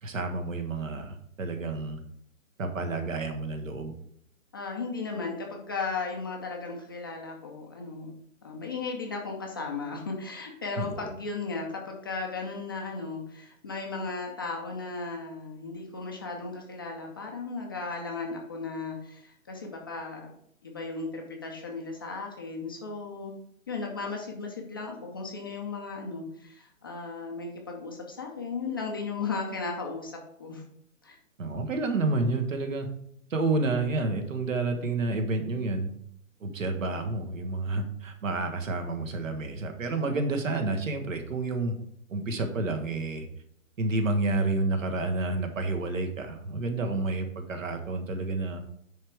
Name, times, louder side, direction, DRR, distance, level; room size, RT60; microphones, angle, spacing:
voice 1, 0.0-2.0 2.6-3.9 10.8-11.1 31.4-32.9 33.3-35.9 36.4-41.8 42.1-43.3 43.8-48.6, right 2 dB, 70° right, 6 dB, 1.5 m, -29 dB
voice 2, 4.5-8.1 8.4-20.3 20.6-23.3 23.7-30.6 31.0-31.2, left 4 dB, 20° left, 0 dB, 0.5 m, -36 dB
10.0 x 3.6 x 4.6 m, 0.71 s
hypercardioid pair, 145°, 41 cm